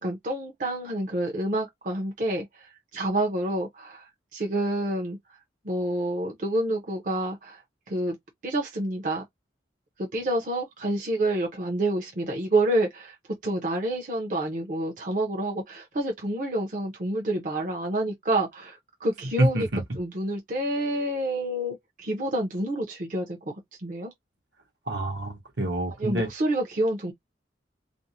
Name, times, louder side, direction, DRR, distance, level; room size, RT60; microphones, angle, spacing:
voice 1, 0.0-5.2 5.6-7.6 7.9-8.2 8.4-9.2 10.0-13.2 13.4-19.7 19.9-24.1 26.0-27.1, right 1 dB, 45° right, 0.6 m, -28 dB
voice 2, 19.4-19.8 24.9-26.3, right 1 dB, 70° right, 0.9 m, -26 dB
2.5 x 2.0 x 2.7 m
head